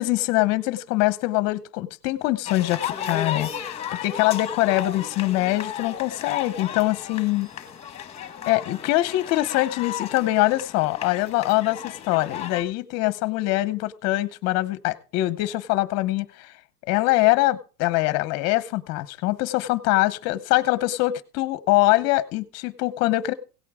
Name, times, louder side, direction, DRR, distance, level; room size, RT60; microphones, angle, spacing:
voice 1, 0.0-7.5 8.5-16.5 16.9-23.3, left 18 dB, 35° left, 16 dB, 0.8 m, -23 dB
sound 1, 2.5-12.6, left 9 dB, 15° left, 1.2 m, -34 dB
17.0 x 8.5 x 3.6 m, 0.36 s
supercardioid pair, 145°, 46 cm